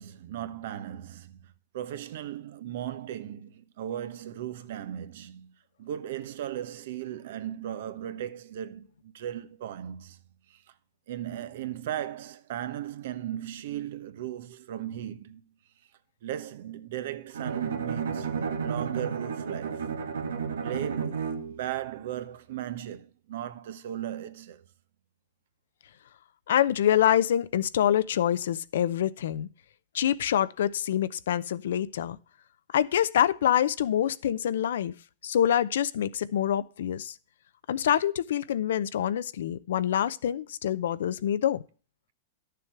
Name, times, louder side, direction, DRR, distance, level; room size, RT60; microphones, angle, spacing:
voice 1, 0.0-5.5 5.8-10.2 10.5-10.6 11.1-15.4 16.2-19.9 20.6-24.6, right 11 dB, 65° right, 1.1 m, -37 dB
Bowed string instrument, 17.3-21.7, right 6 dB, 90° right, 1.7 m, -32 dB
voice 2, 26.5-29.5 29.9-32.2 32.7-34.9 35.2-37.1 37.7-41.6, left 10 dB, 75° left, 0.7 m, -26 dB
11.5 x 6.9 x 4.6 m
hypercardioid pair, 130°, 0 cm